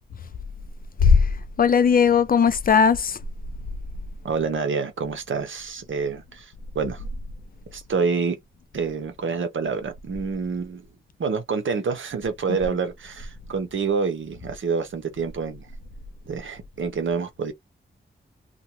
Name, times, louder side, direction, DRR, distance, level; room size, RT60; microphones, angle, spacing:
voice 1, 1.0-3.2 12.5-12.6, left 6 dB, 45° left, 0.4 m, -18 dB
voice 2, 4.2-7.0 7.7-8.4 8.7-10.9 11.2-15.7 16.3-17.5, right 5 dB, 75° right, 0.9 m, -27 dB
2.6 x 2.3 x 2.9 m
wide cardioid pair, 135°, 20 cm